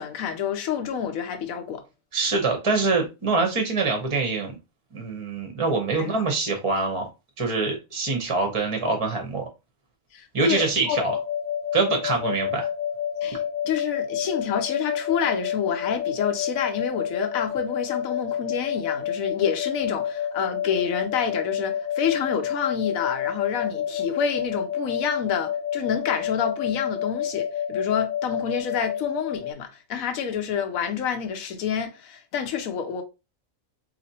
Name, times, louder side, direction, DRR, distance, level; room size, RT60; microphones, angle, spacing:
voice 1, 0.0-1.8 6.0-6.2 10.1-11.0 13.2-13.4 13.6-33.0, left 7 dB, 80° left, 1.1 m, -28 dB
voice 2, 2.1-4.6 4.9-7.1 7.4-9.5 10.3-11.2 11.7-12.7, right 4 dB, 30° right, 0.7 m, -24 dB
sound 1, 10.9-29.5, left 8 dB, 50° left, 0.6 m, -29 dB
4.1 x 3.0 x 2.7 m
omnidirectional pair, 1.4 m